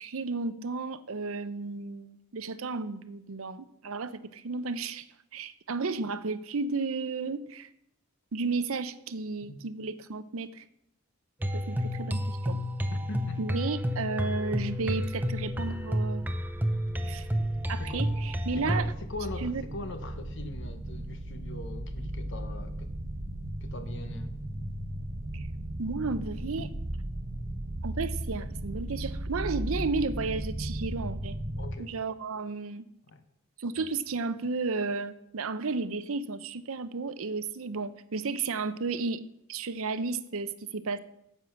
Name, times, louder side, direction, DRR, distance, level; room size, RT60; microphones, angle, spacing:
voice 1, 0.0-5.0 5.3-7.7 8.3-10.6 11.5-12.6 13.4-16.3 17.0-17.3 17.7-18.8 19.4-19.6 25.3-25.5 25.8-26.7 27.8-31.4 31.8-32.8 33.6-39.2 39.5-41.0, right 4 dB, 75° right, 13 dB, 0.6 m, -33 dB
sound 1, 11.4-18.9, equal, 10° right, 0.6 m, -30 dB
voice 2, 12.9-13.5 17.3-17.4 17.8-18.1 18.6-22.9 23.6-24.4 31.6-31.9 33.1-33.2, left 2 dB, 60° left, 8 dB, 1.0 m, -41 dB
sound 2, 15.4-31.7, right 1 dB, 35° right, 1.0 m, -37 dB
9.8 x 7.8 x 5.9 m, 0.80 s
head